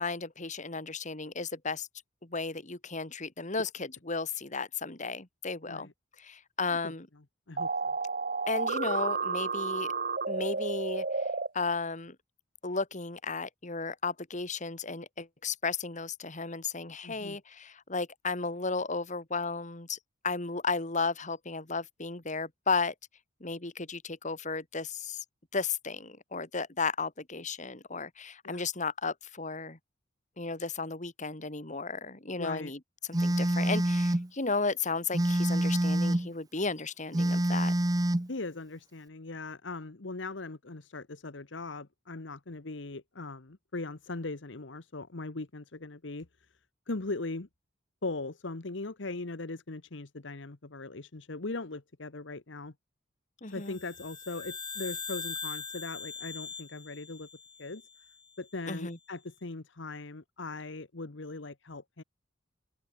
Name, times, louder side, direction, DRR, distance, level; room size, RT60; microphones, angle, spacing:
voice 1, 0.0-1.9 2.2-5.9 6.2-7.1 8.5-9.9 10.3-11.0 11.5-12.2 12.6-20.0 20.2-22.9 23.4-25.2 25.5-29.8 30.4-32.8 33.1-37.7 53.4-53.8 58.7-59.0, left 4 dB, 40° left, 2.4 m, -34 dB
sound 1, 7.6-11.5, right 4 dB, 50° right, 2.6 m, -31 dB
voice 2, 17.0-17.4 28.4-28.7 32.4-32.7 38.3-46.3 46.9-47.5 48.0-52.7 53.5-57.3 57.6-57.8 58.4-62.0, left 3 dB, 65° left, 1.2 m, -39 dB
Telephone, 33.1-34.3 35.1-36.3 37.1-38.3, right 1 dB, 20° right, 0.8 m, -26 dB
sound 2, 53.6-58.1, left 6 dB, 25° left, 2.8 m, -41 dB
head